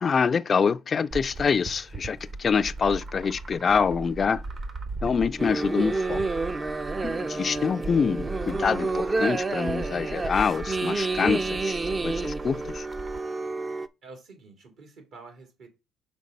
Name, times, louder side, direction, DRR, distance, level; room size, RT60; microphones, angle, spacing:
voice 1, 0.0-4.4 5.0-6.2 7.0-12.9, left 6 dB, 40° left, 0.3 m, -26 dB
sound 1, 1.1-13.2, right 2 dB, 45° right, 0.9 m, -39 dB
sound 2, 5.4-13.9, right 3 dB, 30° right, 0.5 m, -29 dB
voice 2, 14.0-15.7, right 3 dB, 70° right, 2.5 m, -48 dB
5.2 x 3.9 x 5.2 m
supercardioid pair, 75°, 0 cm